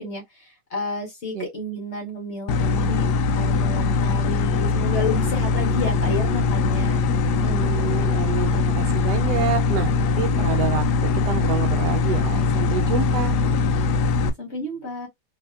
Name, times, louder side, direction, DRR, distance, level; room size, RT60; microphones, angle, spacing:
voice 1, 0.0-3.1 3.3-7.0 14.4-15.1, left 2 dB, 45° left, 1.3 m, -31 dB
sound 1, 2.5-14.3, left 4 dB, 75° left, 1.1 m, -21 dB
voice 2, 7.4-13.3, right 8 dB, 75° right, 1.1 m, -28 dB
3.2 x 2.7 x 2.3 m
omnidirectional pair, 1.9 m